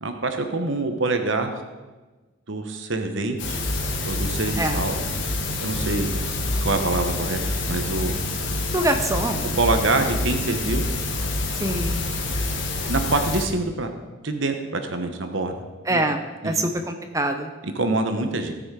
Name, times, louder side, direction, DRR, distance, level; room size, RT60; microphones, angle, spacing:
voice 1, 0.0-1.6 2.5-3.6 4.0-4.9 5.3-6.1 6.6-7.4 7.7-8.1 9.6-10.8 12.9-13.9 14.2-15.6 15.9-16.0 16.4-16.5 17.6-18.5, right 2 dB, 60° right, 6 dB, 1.1 m, -25 dB
sound 1, 3.4-13.4, left 2 dB, 60° left, 1.5 m, -27 dB
voice 2, 8.7-9.6 11.6-12.0 15.9-17.5, right 1 dB, 15° right, 6 dB, 0.7 m, -25 dB
17.5 x 6.2 x 4.8 m, 1.2 s
head